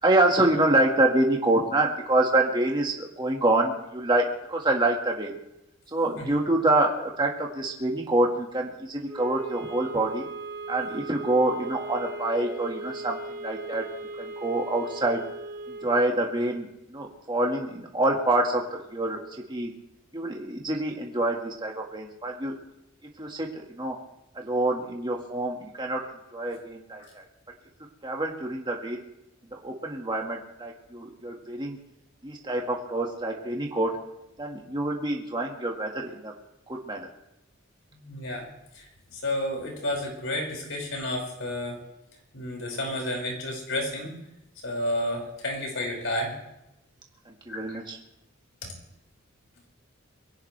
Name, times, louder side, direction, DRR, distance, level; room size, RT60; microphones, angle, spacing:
voice 1, 0.0-5.4 5.9-10.3 10.7-13.9 14.2-15.2 15.7-19.7 20.1-22.6 23.2-24.0 24.3-26.0 26.3-27.3 28.0-29.0 29.5-31.8 32.2-33.9 34.4-36.3 36.7-37.1 47.3-48.0, right 2 dB, 20° right, 0 dB, 1.8 m, -26 dB
sound 1, 9.0-16.0, right 3 dB, 80° right, 3.8 m, -38 dB
voice 2, 38.0-38.5 38.7-41.8 42.3-44.1 44.6-46.3 47.5-47.8, left 1 dB, 70° left, 0 dB, 5.6 m, -31 dB
22.5 x 17.0 x 3.3 m, 0.87 s
head